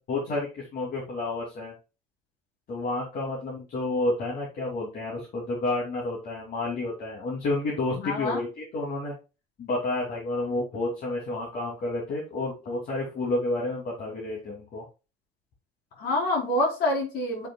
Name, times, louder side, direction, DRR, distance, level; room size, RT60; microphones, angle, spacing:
voice 1, 0.1-1.7 2.7-9.1 9.6-14.8, left 2 dB, 60° left, -4 dB, 2.8 m, -30 dB
voice 2, 7.9-8.4 16.0-17.5, left 1 dB, 75° left, -2 dB, 4.4 m, -26 dB
8.4 x 5.9 x 2.3 m, 0.30 s
cardioid pair, 110°, 17 cm